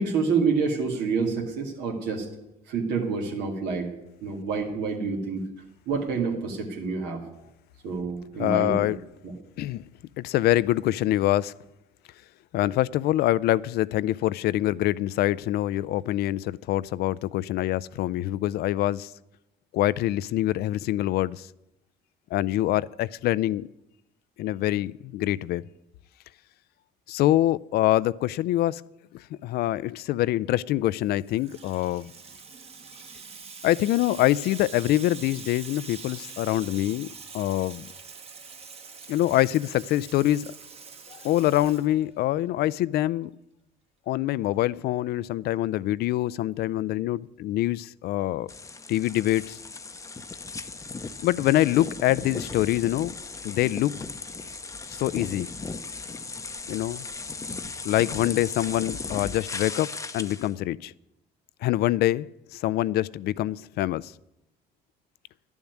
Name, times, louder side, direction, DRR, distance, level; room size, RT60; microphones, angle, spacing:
voice 1, 0.0-2.3 2.7-3.9 4.2-5.4 5.9-7.2 7.8-8.8 9.2-9.3, right 5 dB, 85° right, 2.2 m, -27 dB
voice 2, 8.4-9.0 9.6-9.8 10.2-11.5 12.5-19.1 19.7-21.5 22.3-23.7 24.4-25.6 27.1-28.8 29.1-32.1 33.6-37.1 37.3-37.9 39.1-40.5 41.1-43.3 44.1-48.5 48.9-49.6 51.2-53.1 53.4-53.9 54.9-55.5 56.7-57.0 57.8-60.9 61.6-64.1, left 14 dB, 70° left, 0.4 m, -25 dB
Water tap faucet / Sink (filling or washing), 31.0-42.4, right 5 dB, 35° right, 1.4 m, -44 dB
sound 1, 48.5-60.5, left 4 dB, 20° left, 0.7 m, -37 dB
11.5 x 7.1 x 9.5 m
cardioid pair, 110°, 17 cm